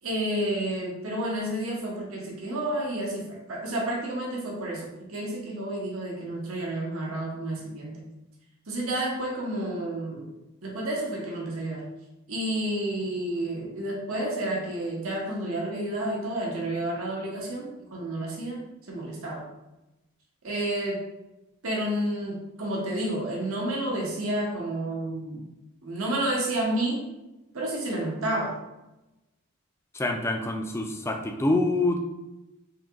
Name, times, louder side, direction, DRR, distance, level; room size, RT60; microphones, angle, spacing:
voice 1, 0.0-8.0 8.7-10.3 10.6-11.8 12.3-18.6 18.9-19.4 20.4-21.0 21.6-25.4 25.8-27.0 27.5-28.6, right 1 dB, 70° right, -3 dB, 0.9 m, -30 dB
voice 2, 29.9-32.0, left 2 dB, 10° left, 3 dB, 0.3 m, -26 dB
3.7 x 2.9 x 3.5 m, 0.99 s
head